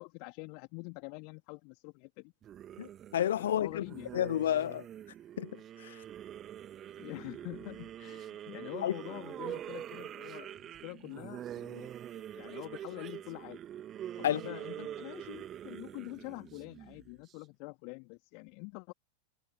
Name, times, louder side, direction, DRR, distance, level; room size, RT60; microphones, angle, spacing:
voice 1, 0.0-2.3 3.4-4.1 7.0-13.6 14.2-18.9, left 37 dB, 45° left, 2.9 m, -46 dB
sound 1, 2.4-17.3, right 11 dB, 30° right, 2.1 m, -45 dB
voice 2, 2.8-3.8 4.1-4.8 5.4-5.5 5.8-5.9 8.8-8.9 14.2-14.4, left 11 dB, 60° left, 0.7 m, -30 dB
figure-of-eight pair, 90°, 0 cm